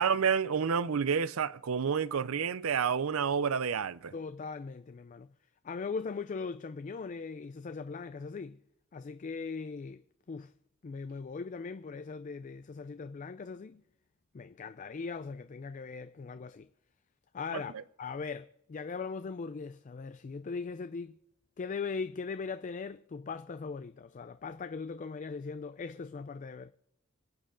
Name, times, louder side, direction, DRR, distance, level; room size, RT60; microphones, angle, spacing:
voice 1, 0.0-4.1 17.5-17.8, right 6 dB, 85° right, 0.5 m, -29 dB
voice 2, 4.1-5.3 5.6-8.6 8.9-10.0 10.3-10.5 10.8-13.8 14.3-16.7 17.3-17.7 18.0-21.2 21.6-26.7, left 4 dB, 35° left, 0.4 m, -39 dB
25.0 x 8.7 x 3.8 m
head